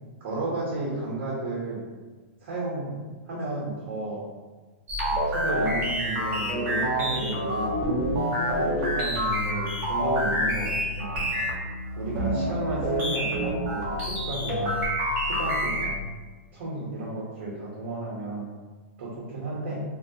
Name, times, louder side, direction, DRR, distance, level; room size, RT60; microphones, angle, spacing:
voice 1, 0.2-1.8 2.4-4.2 5.0-7.8 8.3-11.5 12.0-14.8 15.3-16.0 16.5-18.5 19.0-19.8, right 2 dB, 65° right, -5 dB, 0.7 m, -33 dB
sound 1, 4.9-16.0, equal, 30° right, 0.7 m, -27 dB
2.3 x 2.1 x 2.6 m, 1.3 s
hypercardioid pair, 145°, 7 cm